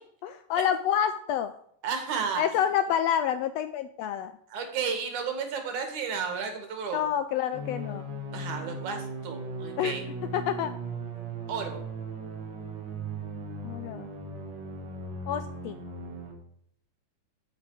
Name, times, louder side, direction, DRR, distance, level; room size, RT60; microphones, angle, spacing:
voice 1, 0.2-1.5 2.4-4.3 6.9-8.1 9.8-10.0 10.3-10.7 13.6-14.1 15.3-15.8, left 9 dB, 85° left, 11 dB, 1.4 m, -28 dB
voice 2, 1.8-2.4 4.5-7.0 8.3-10.1 11.5-11.8, right 6 dB, 75° right, 5 dB, 3.3 m, -32 dB
sound 1, 7.5-16.3, right 2 dB, 40° right, 2.0 m, -38 dB
13.0 x 7.4 x 4.9 m, 0.67 s
omnidirectional pair, 3.5 m